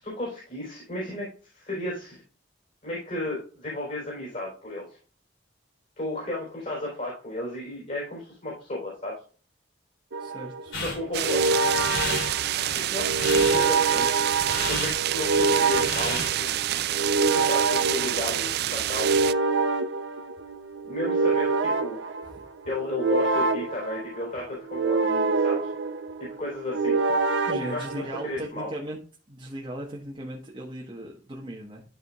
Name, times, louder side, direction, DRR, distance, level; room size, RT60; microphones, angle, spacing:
voice 1, 0.0-2.2 2.8-5.0 6.0-9.2 10.7-11.5 12.7-14.2 14.7-16.5 17.3-19.2 20.8-22.0 22.7-25.7 26.2-27.0 27.6-28.7, left 1 dB, 40° left, -4 dB, 4.1 m, -34 dB
sound 1, 10.1-28.5, right 3 dB, 75° right, 0.7 m, -26 dB
voice 2, 10.2-10.8 22.3-22.4 27.4-29.0 29.3-31.8, right 1 dB, 25° right, -3 dB, 1.3 m, -37 dB
sound 2, 10.7-16.6, left 2 dB, 75° left, 3.2 m, -34 dB
sound 3, 11.1-19.3, right 13 dB, 55° right, 0.3 m, -28 dB
12.5 x 5.0 x 2.4 m, 0.39 s
head